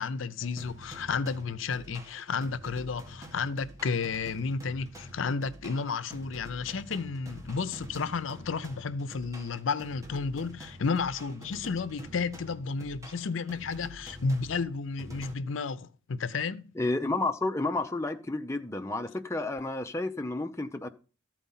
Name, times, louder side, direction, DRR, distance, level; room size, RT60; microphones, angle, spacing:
voice 1, 0.0-16.6, left 4 dB, 80° left, 0.6 m, -32 dB
sound 1, 0.6-15.3, equal, 15° right, 1.5 m, -47 dB
voice 2, 16.8-20.9, left 2 dB, 15° left, 0.7 m, -31 dB
13.0 x 4.7 x 5.5 m
head